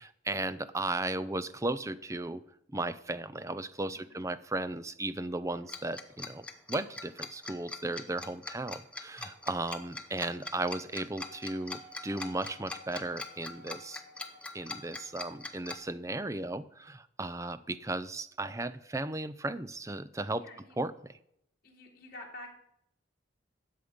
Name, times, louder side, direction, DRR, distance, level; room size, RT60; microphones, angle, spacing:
voice 1, 0.0-2.4 2.7-14.0 14.5-20.5 20.8-21.2, right 2 dB, 15° right, 14 dB, 0.5 m, -35 dB
Tick-tock, 5.7-15.7, left 3 dB, 5° left, 0.9 m, -41 dB
Wind instrument woodwind instrument, 11.3-15.6 16.3-16.4, left 2 dB, 40° right, 4.4 m, -56 dB
voice 2, 20.4-20.7 21.6-22.5, left 1 dB, 50° left, -1 dB, 3.2 m, -48 dB
13.0 x 8.4 x 5.1 m, 0.76 s
head